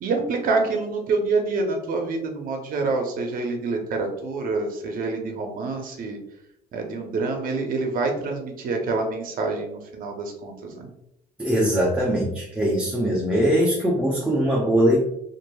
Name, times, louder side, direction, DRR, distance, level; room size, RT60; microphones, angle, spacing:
voice 1, 0.0-6.2 6.7-10.9, right 3 dB, 55° right, 3 dB, 0.7 m, -27 dB
voice 2, 11.4-15.1, equal, 5° right, -5 dB, 0.6 m, -21 dB
2.9 x 2.5 x 2.2 m, 0.80 s
cardioid pair, 110°, 17 cm